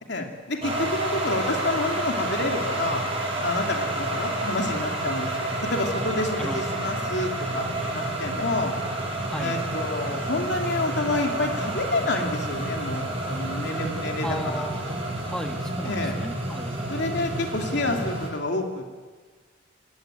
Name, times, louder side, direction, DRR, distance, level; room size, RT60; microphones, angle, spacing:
voice 1, 0.1-3.0 3.4-7.6 7.9-8.7 9.4-14.7 15.8-16.2 16.9-19.0, left 2 dB, 60° left, 2 dB, 2.9 m, -29 dB
sound 1, 0.6-18.3, right 1 dB, 30° right, 6.7 m, -29 dB
voice 2, 14.2-16.8, equal, 5° left, 4 dB, 1.9 m, -34 dB
27.5 x 21.0 x 9.1 m, 1.4 s
head